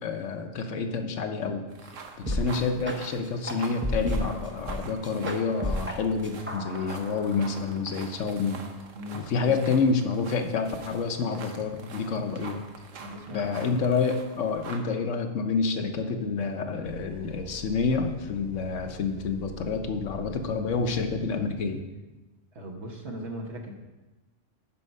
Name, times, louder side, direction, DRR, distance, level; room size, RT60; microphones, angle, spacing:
voice 1, 0.0-1.7 2.2-8.6 9.1-12.6 13.3-21.8, left 4 dB, 75° left, 6 dB, 1.1 m, -28 dB
sound 1, 1.7-14.8, right 5 dB, 80° right, 1.2 m, -45 dB
Dark Melody, 2.3-2.5 2.8-3.0 3.5-4.8 5.0-6.0 6.2-7.7, equal, 15° right, 0.6 m, -32 dB
voice 2, 8.9-9.6 13.0-13.6 22.5-23.7, equal, 60° right, 2 dB, 1.4 m, -39 dB
sound 2, 16.8-21.8, left 1 dB, 35° left, 0.7 m, -46 dB
10.0 x 4.4 x 5.4 m, 1.1 s
omnidirectional pair, 1.3 m